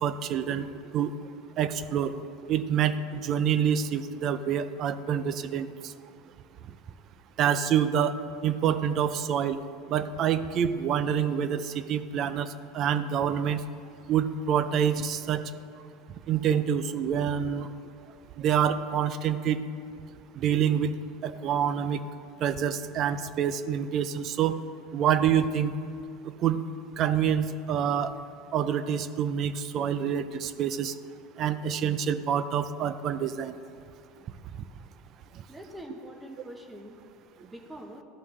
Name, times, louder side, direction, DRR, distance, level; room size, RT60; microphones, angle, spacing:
voice 1, 0.0-0.7 0.9-1.1 1.6-2.1 2.5-5.9 7.4-8.1 8.4-9.6 9.9-13.6 14.1-15.4 16.3-17.7 18.4-19.6 20.4-20.9 21.2-22.0 22.4-24.6 24.9-25.7 26.4-26.6 27.0-28.1 28.5-30.9 31.4-33.5, right 8 dB, 45° right, 13 dB, 0.4 m, -27 dB
voice 2, 35.5-37.0 37.4-38.0, equal, 10° right, 3 dB, 1.0 m, -44 dB
13.5 x 5.5 x 3.2 m, 2.4 s
supercardioid pair, 115°, 0 cm